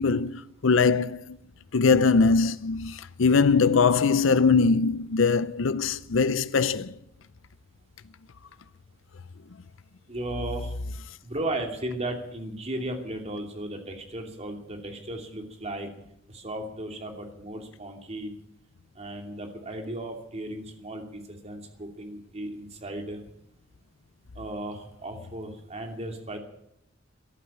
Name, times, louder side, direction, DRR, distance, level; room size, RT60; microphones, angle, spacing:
voice 1, 0.0-1.4 1.7-6.9, left 4 dB, 75° left, 0.6 m, -22 dB
voice 2, 10.1-10.7 11.2-15.9 16.3-18.3 19.0-23.2 24.4-26.4, right 1 dB, 35° right, 2.7 m, -35 dB
14.0 x 11.5 x 8.6 m
head